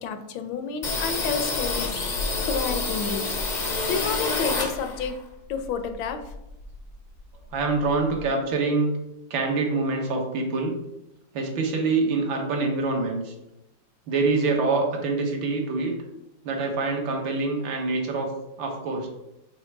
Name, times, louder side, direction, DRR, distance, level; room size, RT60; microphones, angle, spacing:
voice 1, 0.0-3.2 3.9-5.1 5.5-6.2, left 6 dB, 80° left, 8 dB, 1.4 m, -30 dB
sound 1, 0.8-5.2 5.5-6.9 7.2-7.3 7.5-8.3, left 3 dB, 60° left, 0.4 m, -28 dB
voice 2, 7.5-8.9 9.3-10.7 11.3-13.3 14.1-15.9 16.4-18.3 18.6-19.1, right 3 dB, 80° right, 1 dB, 1.8 m, -25 dB
7.4 x 3.2 x 4.5 m, 0.89 s
omnidirectional pair, 2.1 m